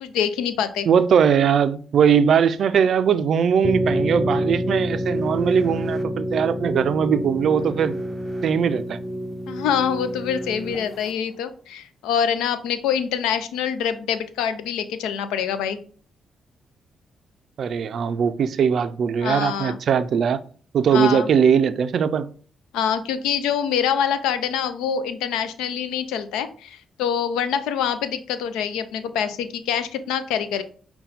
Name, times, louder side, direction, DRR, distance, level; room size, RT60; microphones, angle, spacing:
voice 1, 0.0-0.9 9.5-15.8 19.2-19.8 20.9-21.3 22.7-30.6, left 8 dB, 85° left, 0.4 m, -25 dB
voice 2, 0.9-8.0 8.4-9.0 17.6-20.4 20.7-22.3, right 7 dB, 65° right, 0.3 m, -20 dB
sound 1, 3.6-11.1, equal, 15° right, 0.5 m, -27 dB
5.5 x 2.2 x 4.0 m
supercardioid pair, 55°, 0 cm